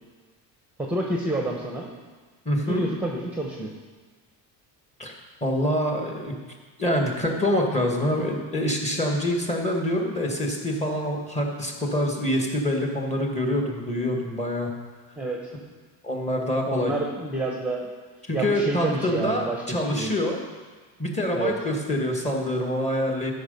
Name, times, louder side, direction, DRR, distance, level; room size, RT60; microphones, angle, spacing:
voice 1, 0.8-1.9 2.5-3.7 15.2-15.5 16.7-17.9 18.3-20.1 21.3-21.5, right 2 dB, 5° right, 0 dB, 0.9 m, -29 dB
voice 2, 2.4-2.8 5.0-6.4 6.8-14.7 16.0-16.9 18.3-20.4 21.0-23.3, equal, 15° left, 1 dB, 1.5 m, -26 dB
13.0 x 5.6 x 5.3 m, 1.4 s
cardioid pair, 135°, 42 cm